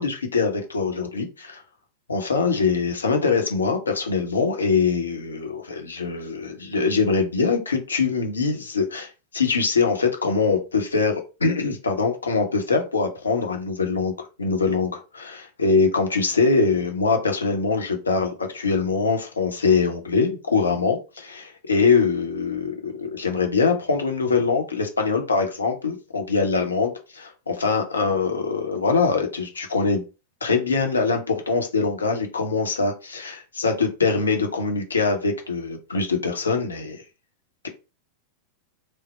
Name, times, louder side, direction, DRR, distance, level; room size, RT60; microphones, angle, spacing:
voice 1, 0.0-1.6 2.1-30.0 30.4-37.0, left 4 dB, 75° left, 0.7 m, -23 dB
3.1 x 2.0 x 4.2 m
figure-of-eight pair, 90°, 0 cm